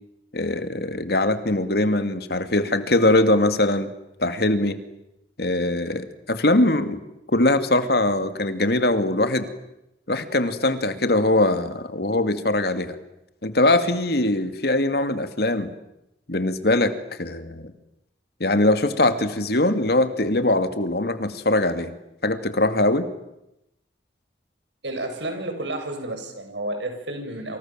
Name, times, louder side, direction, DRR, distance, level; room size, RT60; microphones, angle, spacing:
voice 1, 0.3-3.9 4.2-4.8 5.4-7.0 7.3-9.5 10.1-13.0 13.4-15.7 16.3-16.9 17.2-17.6 18.4-21.9 22.2-23.1, left 2 dB, 60° left, 10 dB, 2.4 m, -21 dB
voice 2, 24.8-27.6, right 1 dB, 85° right, 5 dB, 7.4 m, -31 dB
29.0 x 27.5 x 7.5 m, 0.85 s
head